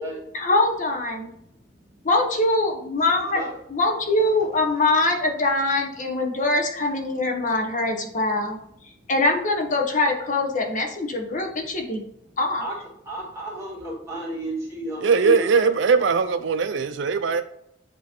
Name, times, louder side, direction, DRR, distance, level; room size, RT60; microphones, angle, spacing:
voice 1, 0.3-1.3 2.0-3.4 3.7-8.6 9.1-12.0 12.4-12.6, left 2 dB, 45° left, 2 dB, 1.0 m, -23 dB
voice 2, 1.4-2.0 3.1-3.6 9.0-9.1 12.2-12.7 13.1-15.5, right 1 dB, 15° right, -5 dB, 2.3 m, -34 dB
voice 3, 15.0-17.4, right 5 dB, 70° right, 9 dB, 0.4 m, -20 dB
8.1 x 3.1 x 4.3 m, 0.73 s
head